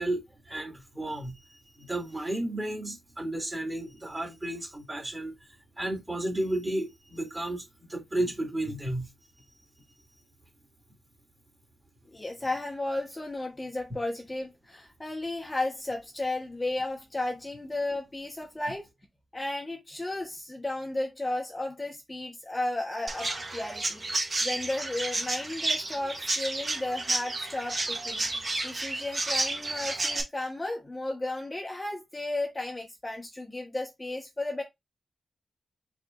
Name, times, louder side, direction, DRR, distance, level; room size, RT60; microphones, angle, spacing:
voice 1, 0.0-5.4 5.8-7.6 7.9-9.1, right 1 dB, 20° right, 2.2 m, -33 dB
voice 2, 12.1-18.9 19.3-24.0 24.4-34.6, left 2 dB, 20° left, 1.1 m, -34 dB
Chirp tweet, 23.1-30.2, right 2 dB, 35° right, 1.5 m, -31 dB
4.8 x 4.3 x 2.4 m
wide cardioid pair, 110°, 0 cm